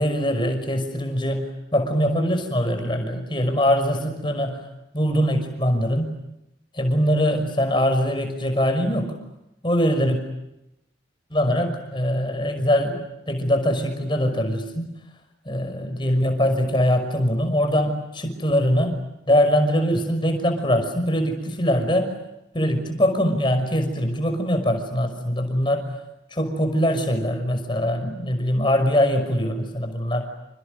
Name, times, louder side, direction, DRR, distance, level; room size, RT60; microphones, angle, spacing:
voice 1, 0.0-4.7 4.9-6.1 6.7-9.2 9.6-10.2 11.3-14.9 15.5-19.0 19.3-22.1 22.5-25.9 26.3-30.3, equal, 25° left, 7 dB, 5.7 m, -22 dB
29.0 x 29.0 x 6.7 m, 0.88 s
head